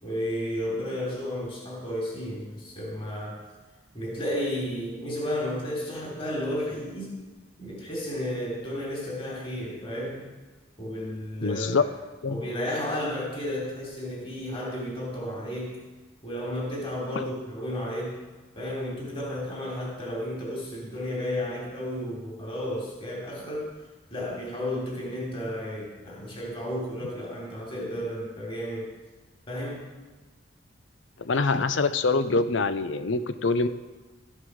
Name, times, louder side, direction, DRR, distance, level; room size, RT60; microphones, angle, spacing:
voice 1, 0.0-3.4 3.9-7.1 7.6-10.2 10.8-11.6 12.3-15.8 16.2-18.2 18.5-23.7 24.1-28.9 29.5-29.8, equal, 30° left, -4 dB, 3.3 m, -32 dB
voice 2, 11.4-11.8 12.2-12.4 17.1-17.2 31.2-33.7, left 3 dB, 75° left, 12 dB, 0.7 m, -25 dB
13.5 x 8.2 x 6.3 m, 1.2 s
head